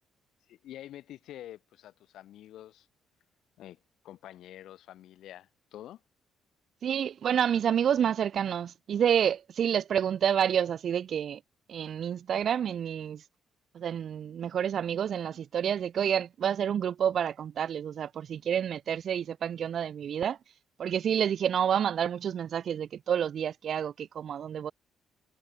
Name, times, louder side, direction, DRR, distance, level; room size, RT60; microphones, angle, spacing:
voice 1, 0.5-2.9 3.6-6.0, left 12 dB, 80° left, 7.8 m, -47 dB
voice 2, 6.8-11.4 11.7-13.2 13.7-20.4 20.8-24.7, right 8 dB, 60° right, 0.7 m, -29 dB
cardioid pair, 90°, 0 cm